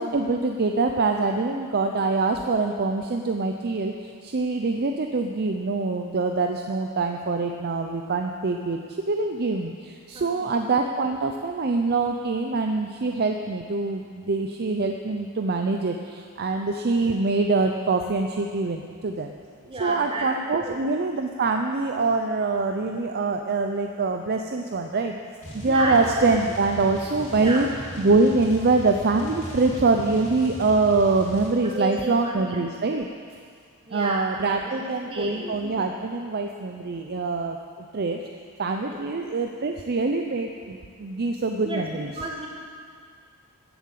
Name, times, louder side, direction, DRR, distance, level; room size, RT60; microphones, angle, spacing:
voice 1, 0.0-8.8 9.1-19.3 19.8-25.2 25.5-27.7 28.0-33.1 33.9-37.6 37.9-38.2 38.6-42.1, right 3 dB, 45° right, 4 dB, 0.5 m, -24 dB
voice 2, 10.1-10.6 19.7-20.7 25.7-26.0 27.4-27.7 31.6-32.6 33.9-34.2 34.6-35.6 38.8-39.0 41.6-42.5, right 1 dB, 25° right, -1 dB, 1.9 m, -33 dB
sound 1, 25.4-31.5, equal, 30° left, 3.2 m, -38 dB
13.0 x 7.6 x 7.6 m, 2.1 s
head